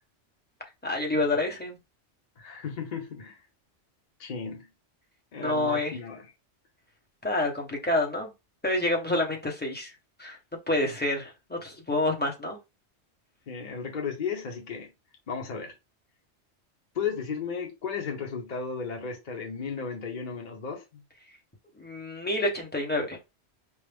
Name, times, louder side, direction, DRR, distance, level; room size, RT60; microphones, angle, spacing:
voice 1, 0.8-1.8 5.4-5.9 7.2-8.3 8.6-9.9 10.2-10.4 10.7-12.6 21.8-23.2, left 2 dB, 10° left, 0.8 m, -28 dB
voice 2, 2.4-3.4 4.2-4.7 5.3-6.3 13.5-14.9 15.3-15.7 16.9-21.0, left 6 dB, 45° left, 0.9 m, -34 dB
4.6 x 2.0 x 3.4 m
omnidirectional pair, 1.2 m